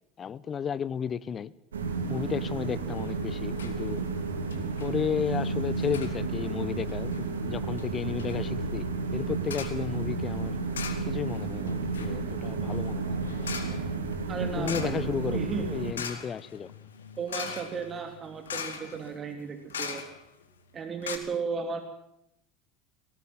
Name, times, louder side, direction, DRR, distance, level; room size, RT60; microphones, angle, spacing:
voice 1, 0.2-1.5 2.1-4.0 4.8-10.6 11.1-13.2 14.3-16.7, left 7 dB, 35° left, 18 dB, 0.8 m, -33 dB
sound 1, 1.7-15.9, right 4 dB, 85° right, 3.0 m, -32 dB
sound 2, 2.9-3.2 3.5-3.8 4.1-4.2 4.5-4.9 5.8-6.2 6.9-7.2 7.8-7.9 8.2-8.4 9.5-9.8 10.7-11.4 11.7-20.4 20.7-20.8 21.0-21.2, left 6 dB, 80° left, 2.4 m, -40 dB
voice 2, 14.3-15.7 17.2-20.0 20.7-21.8, right 5 dB, 35° right, 7 dB, 3.0 m, -35 dB
20.0 x 18.5 x 7.5 m, 0.78 s
hypercardioid pair, 80°, 0 cm